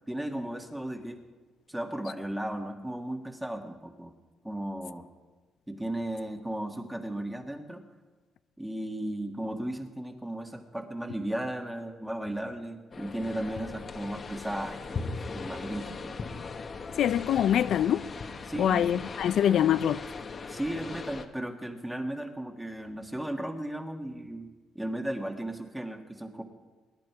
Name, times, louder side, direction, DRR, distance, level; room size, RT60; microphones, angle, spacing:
voice 1, 0.1-1.2 1.7-4.1 4.4-5.1 5.7-7.8 8.6-16.2 18.4-18.8 20.5-24.5 24.7-26.4, right 1 dB, 5° right, 1.8 m, -35 dB
sound 1, 12.9-21.3, left 4 dB, 45° left, 1.2 m, -39 dB
voice 2, 17.0-18.0 18.6-20.0, left 10 dB, 70° left, 0.4 m, -24 dB
20.5 x 10.5 x 4.7 m
cardioid pair, 90°, 0 cm